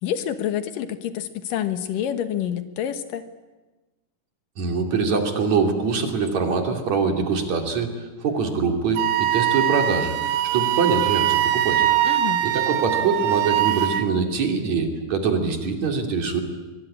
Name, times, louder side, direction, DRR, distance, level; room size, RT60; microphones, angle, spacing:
voice 1, 0.0-3.3 12.0-12.4, left 10 dB, 80° left, 10 dB, 3.0 m, -28 dB
voice 2, 4.6-10.1 10.5-11.9 12.4-16.4, right 5 dB, 55° right, 4 dB, 3.9 m, -23 dB
Wind instrument woodwind instrument, 9.0-14.1, right 13 dB, 85° right, 2.6 m, -22 dB
23.5 x 23.5 x 10.0 m, 1.2 s
omnidirectional pair, 3.8 m